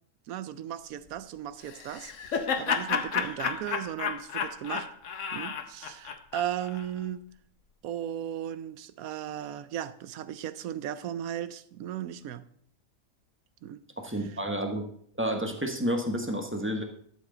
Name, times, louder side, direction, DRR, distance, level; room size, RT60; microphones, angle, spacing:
voice 1, 0.3-4.9 5.3-7.2 7.8-12.5 13.6-13.8 14.2-14.4, right 10 dB, 80° right, 1.1 m, -36 dB
Laughter, 1.7-6.9, left 6 dB, 65° left, 1.2 m, -31 dB
voice 2, 14.0-14.9 15.2-16.8, equal, 10° right, 1.0 m, -30 dB
12.0 x 7.5 x 3.8 m
omnidirectional pair, 1.5 m